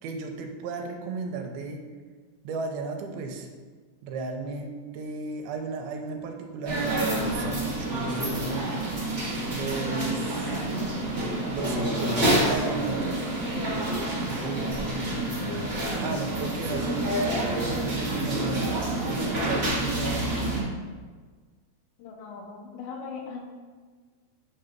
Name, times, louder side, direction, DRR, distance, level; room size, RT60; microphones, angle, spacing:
voice 1, 0.0-1.8 2.4-3.5 4.0-8.7 9.5-10.6 11.5-13.2 14.4-15.4 16.0-20.4, right 3 dB, 85° right, 4 dB, 2.6 m, -35 dB
sound 1, 6.7-20.6, right 1 dB, 65° right, 0.6 m, -28 dB
voice 2, 14.4-14.8 22.0-23.4, left 5 dB, 80° left, 1 dB, 2.7 m, -39 dB
8.4 x 3.8 x 4.5 m, 1.5 s
omnidirectional pair, 4.3 m